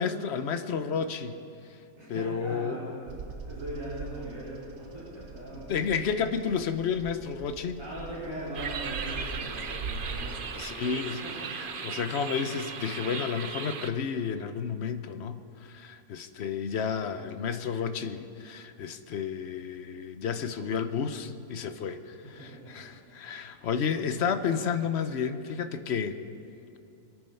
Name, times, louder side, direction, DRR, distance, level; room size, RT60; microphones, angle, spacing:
voice 1, 0.0-1.4 1.7-1.8 2.1-2.9 5.7-7.8 10.5-11.2 11.8-26.2, left 6 dB, 55° left, 10 dB, 0.9 m, -31 dB
voice 2, 2.0-3.1 3.4-5.6 7.8-10.3 10.6-11.3 22.4-22.8, right 1 dB, 20° right, -11 dB, 4.8 m, -40 dB
Bird vocalization bird call bird song, 3.1-10.3, right 4 dB, 75° right, 1.6 m, -42 dB
sound 1, 8.5-13.9, right 6 dB, 45° right, 0.8 m, -37 dB
25.0 x 9.5 x 5.6 m, 2.7 s
omnidirectional pair, 1.5 m